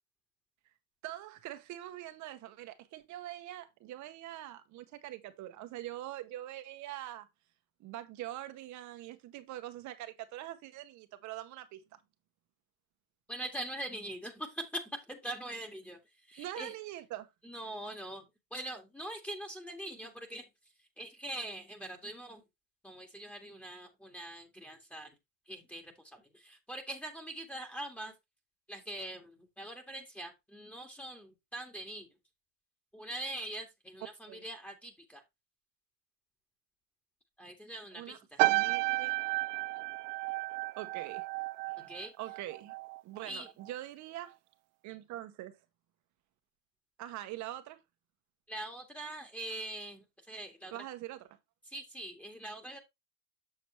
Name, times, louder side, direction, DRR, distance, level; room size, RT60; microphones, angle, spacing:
voice 1, 1.0-7.3 7.8-11.8 16.4-17.3 34.3-34.5 37.9-39.2 40.8-41.2 42.2-42.7 43.0-44.3 44.8-45.6 47.0-47.8 50.7-51.3, right 14 dB, 50° right, 1.6 m, -43 dB
voice 2, 13.3-16.0 16.3-16.7 17.4-20.5 21.0-22.4 22.8-25.2 25.5-28.1 28.7-32.1 32.9-35.2 37.4-38.2 41.8-42.1 43.2-43.5 48.5-50.7 51.7-52.8, right 1 dB, 5° left, 2.0 m, -43 dB
sound 1, 38.4-43.0 43.3-43.7, right 22 dB, 85° right, 0.5 m, -32 dB
7.3 x 6.6 x 3.2 m
supercardioid pair, 115°, 36 cm